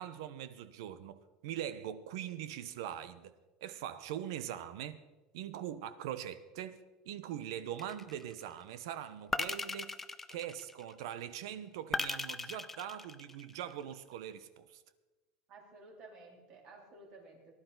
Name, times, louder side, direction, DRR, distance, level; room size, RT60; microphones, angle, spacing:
voice 1, 0.0-3.3 3.6-5.0 5.3-10.0 10.3-14.8, right 10 dB, 85° right, 0.9 m, -42 dB
sound 1, 7.8-8.4 9.3-11.0 11.9-13.7, left 3 dB, 10° left, 0.4 m, -38 dB
voice 2, 15.5-17.5, right 3 dB, 40° right, 3.4 m, -54 dB
19.0 x 11.5 x 4.0 m
cardioid pair, 165°, 2 cm